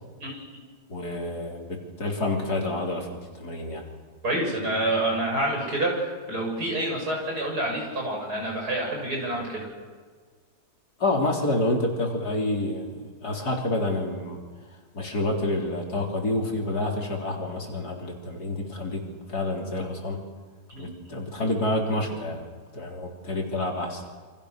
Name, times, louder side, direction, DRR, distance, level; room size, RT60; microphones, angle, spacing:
voice 1, 0.2-0.6 4.2-9.7 20.7-20.9, right 1 dB, 60° right, 0 dB, 7.9 m, -28 dB
voice 2, 0.9-3.8 11.0-14.4 14.9-20.2 20.8-22.5 22.7-24.0, left 2 dB, 60° left, 0 dB, 4.5 m, -28 dB
28.5 x 26.0 x 6.7 m, 1.5 s
omnidirectional pair, 1.9 m